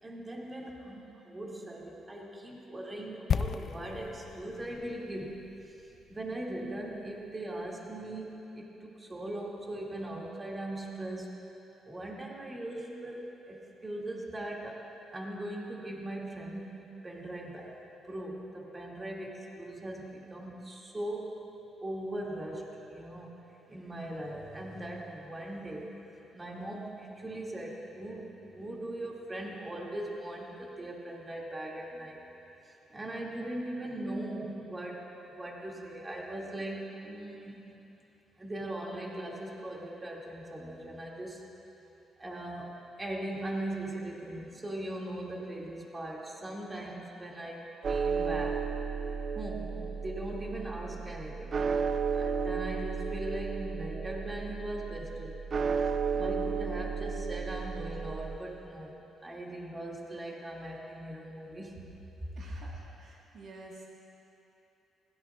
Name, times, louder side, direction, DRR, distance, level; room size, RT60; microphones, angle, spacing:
voice 1, 0.0-11.4 11.9-17.8 18.0-21.4 21.8-23.4 23.7-26.0 26.3-32.2 32.9-37.7 38.4-41.4 42.2-48.7 49.3-51.6 52.1-55.4 56.1-58.9 59.2-61.8 62.2-62.3, right 1 dB, 20° right, -2 dB, 2.3 m, -40 dB
sound 1, 3.3-7.2 7.5-7.6, left 7 dB, 55° left, 0.3 m, -36 dB
sound 2, 47.8-58.4, right 5 dB, 45° right, 0.5 m, -33 dB
voice 2, 62.4-63.8, right 2 dB, 65° right, -3 dB, 1.6 m, -50 dB
20.5 x 17.0 x 2.4 m, 3.0 s
cardioid pair, 90°, 0 cm